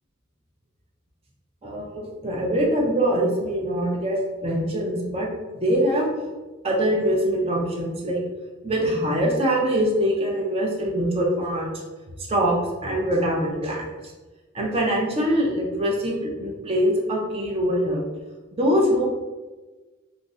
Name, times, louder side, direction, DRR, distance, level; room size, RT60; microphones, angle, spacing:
voice 1, 1.6-5.3 5.6-6.1 6.6-8.2 8.6-11.7 12.2-14.1 14.5-18.0 18.6-19.1, equal, 30° right, -1 dB, 0.5 m, -23 dB
2.5 x 2.0 x 3.5 m, 1.2 s
head